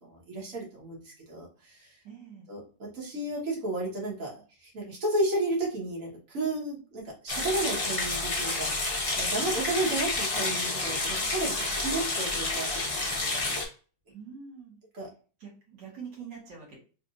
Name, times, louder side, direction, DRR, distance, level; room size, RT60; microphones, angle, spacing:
voice 1, 0.0-1.0 1.3-1.9 2.5-8.7 9.2-12.7 13.3-13.4 14.9-15.1, right 2 dB, 45° right, -3 dB, 1.7 m, -32 dB
voice 2, 2.0-2.5 13.5-13.6 14.1-14.8 15.4-16.8, right 6 dB, 65° right, -3 dB, 2.1 m, -45 dB
sound 1, 7.3-13.6, left 2 dB, 40° left, 0.5 m, -29 dB
3.6 x 3.1 x 2.5 m, 0.37 s
omnidirectional pair, 2.0 m